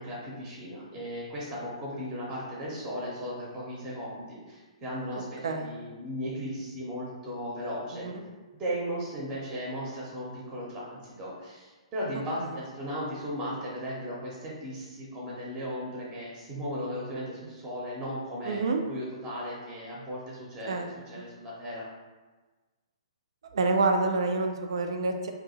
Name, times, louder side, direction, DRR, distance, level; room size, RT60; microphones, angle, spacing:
voice 1, 0.0-8.1 8.6-18.6 18.9-20.8 21.1-21.9, equal, 20° right, -5 dB, 0.8 m, -36 dB
voice 2, 18.5-18.8 20.7-20.9 21.2-21.3 23.5-25.3, right 3 dB, 55° right, 4 dB, 0.4 m, -27 dB
2.7 x 2.6 x 4.0 m, 1.3 s
figure-of-eight pair, 120°, 3 cm